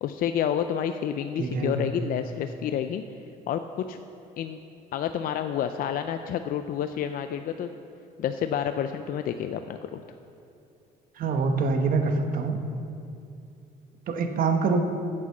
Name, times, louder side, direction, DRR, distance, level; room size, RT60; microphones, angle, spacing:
voice 1, 0.0-3.0 3.5-4.0 4.4-4.6 4.9-7.8 8.2-10.0, left 9 dB, 60° left, 8 dB, 0.4 m, -29 dB
voice 2, 1.4-1.9 11.2-12.6 14.1-14.8, right 4 dB, 55° right, 6 dB, 1.1 m, -25 dB
9.5 x 7.6 x 7.0 m, 2.6 s
cardioid pair, 110°, 17 cm